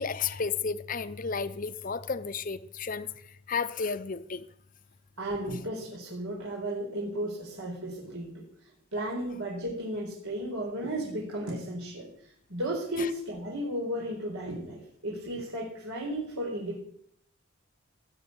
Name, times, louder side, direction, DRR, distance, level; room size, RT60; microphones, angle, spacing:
voice 1, 0.0-4.4 13.0-13.1, left 5 dB, 40° left, 0.7 m, -33 dB
voice 2, 5.2-8.4 8.9-16.8, right 1 dB, 85° right, 4.7 m, -34 dB
19.5 x 7.3 x 9.7 m
head